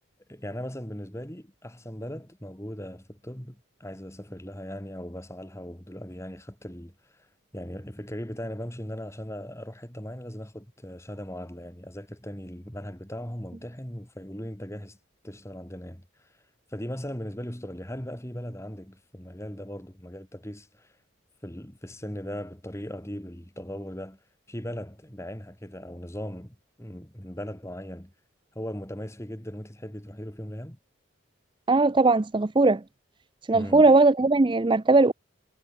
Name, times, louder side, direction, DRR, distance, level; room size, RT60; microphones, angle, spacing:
voice 1, 0.3-7.3 7.5-15.0 15.2-16.3 16.7-20.9 21.4-24.2 24.5-28.1 28.5-30.8 33.5-34.0, equal, 15° left, 2.9 m, -38 dB
voice 2, 31.7-32.8 33.5-35.1, right 3 dB, 25° right, 0.4 m, -19 dB
head